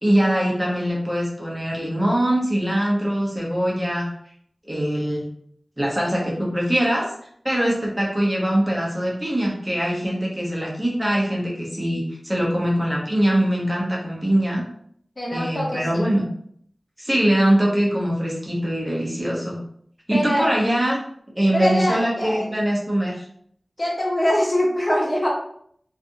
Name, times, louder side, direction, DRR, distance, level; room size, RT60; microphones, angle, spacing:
voice 1, 0.0-4.1 4.7-5.3 5.8-7.1 7.4-14.6 15.3-16.2 17.0-19.6 20.1-21.0 21.4-23.2, right 1 dB, 20° right, -3 dB, 0.7 m, -22 dB
voice 2, 15.2-16.0 20.1-20.5 21.5-22.5 23.8-25.3, equal, 35° left, -3 dB, 0.8 m, -23 dB
2.6 x 2.4 x 2.6 m, 0.65 s
wide cardioid pair, 65°, 0 cm